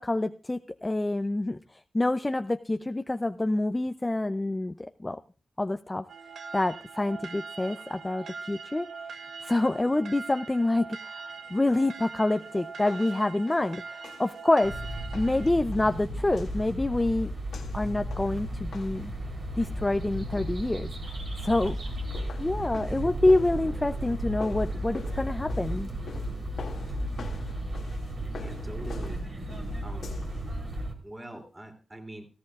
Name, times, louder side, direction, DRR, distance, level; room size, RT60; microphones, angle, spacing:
voice 1, 0.0-1.6 1.9-5.2 5.6-6.0 6.5-8.9 9.4-11.2 11.5-14.8 15.1-17.3 17.7-19.1 19.6-20.9 21.4-21.8 22.4-25.9, left 2 dB, 20° left, 9 dB, 0.5 m, -27 dB
sound 1, 6.1-15.5, right 5 dB, 80° right, 0.9 m, -42 dB
sound 2, 11.7-19.2 21.4-30.5, left 5 dB, 85° left, 1.8 m, -47 dB
sound 3, 14.6-30.9, right 1 dB, 60° right, 3.5 m, -34 dB
voice 2, 28.4-29.4 29.8-30.3 31.0-32.3, right 1 dB, 20° right, 4 dB, 3.0 m, -44 dB
17.5 x 15.0 x 2.4 m, 0.35 s
cardioid pair, 60°, 0 cm